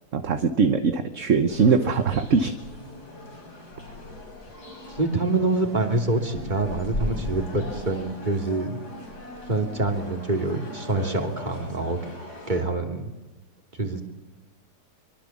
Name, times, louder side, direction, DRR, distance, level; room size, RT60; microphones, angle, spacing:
voice 1, 0.1-2.6, right 5 dB, 55° right, 9 dB, 1.4 m, -21 dB
sound 1, 1.5-12.6, left 1 dB, 80° left, 5.7 m, -38 dB
voice 2, 4.9-8.8 9.5-12.0 12.5-13.1 13.7-14.0, right 2 dB, 30° right, 5 dB, 3.1 m, -26 dB
24.5 x 24.0 x 7.4 m, 1.1 s
omnidirectional pair, 1.7 m